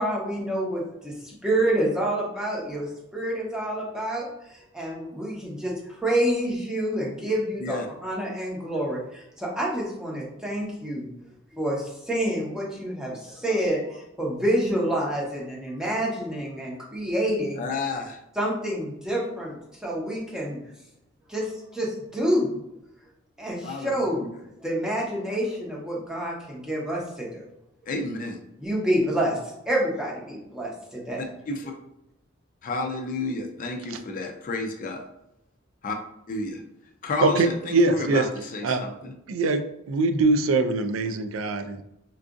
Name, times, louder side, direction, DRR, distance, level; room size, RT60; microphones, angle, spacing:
voice 1, 0.0-11.1 11.5-17.7 18.4-20.6 21.3-22.5 23.4-24.3 24.6-27.5 28.6-31.2, right 1 dB, 5° right, -4 dB, 0.9 m, -28 dB
voice 2, 17.6-18.2 23.6-24.3 27.9-28.4 31.2-31.6 32.6-35.0 35.8-36.0 36.3-36.6 37.0-39.1, left 2 dB, 40° left, 4 dB, 0.4 m, -31 dB
voice 3, 37.2-38.2 38.6-38.8 39.3-39.6 39.9-41.8, right 3 dB, 85° right, 8 dB, 0.4 m, -22 dB
4.5 x 2.4 x 2.5 m, 0.82 s
head